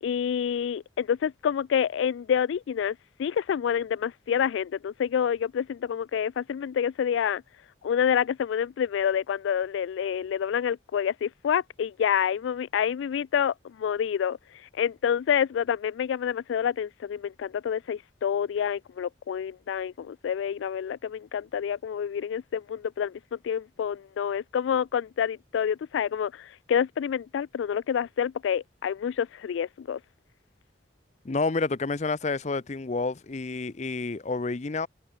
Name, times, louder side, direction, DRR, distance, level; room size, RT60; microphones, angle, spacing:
voice 1, 0.0-7.4 7.8-14.4 14.7-30.0, left 8 dB, 90° left, 0.3 m, -28 dB
voice 2, 31.2-34.9, left 3 dB, 40° left, 0.6 m, -29 dB
head